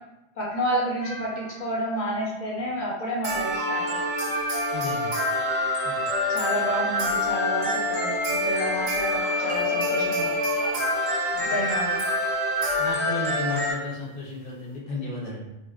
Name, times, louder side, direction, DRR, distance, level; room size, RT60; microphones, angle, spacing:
voice 1, 0.4-4.0 6.3-10.3 11.3-12.0, equal, 45° left, -6 dB, 0.8 m, -29 dB
sound 1, 1.0-1.6 3.2-13.7, left 1 dB, 65° right, 0.9 m, -26 dB
voice 2, 4.7-5.1 5.8-6.0 11.5-11.6 12.8-15.5, left 2 dB, 60° left, -5 dB, 0.4 m, -33 dB
sound 2, 9.0-10.9 11.7-12.3 12.9-13.0 13.7-14.0, right 1 dB, 15° right, 0.6 m, -37 dB
2.4 x 2.4 x 2.2 m, 0.97 s
omnidirectional pair, 1.3 m